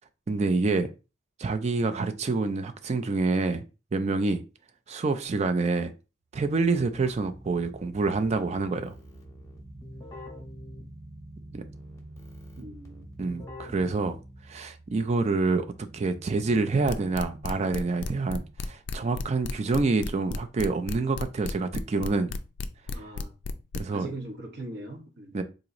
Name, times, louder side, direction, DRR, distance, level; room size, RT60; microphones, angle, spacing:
voice 1, 0.3-0.9 1.4-3.6 3.9-4.4 4.9-5.9 6.3-8.9 11.5-11.6 13.2-14.2 14.5-22.3 23.8-24.1 25.3-25.4, right 3 dB, 35° right, 0.4 m, -27 dB
Keyboard (musical), 6.4-14.7, left 1 dB, 15° left, 0.8 m, -47 dB
sound 1, 6.5-18.5, right 2 dB, 85° right, 0.8 m, -49 dB
voice 2, 12.5-13.1 22.9-23.3 23.9-25.4, right 1 dB, 60° right, 0.8 m, -40 dB
sound 2, 16.9-23.8, left 4 dB, 65° left, 0.3 m, -33 dB
3.8 x 3.0 x 2.5 m
head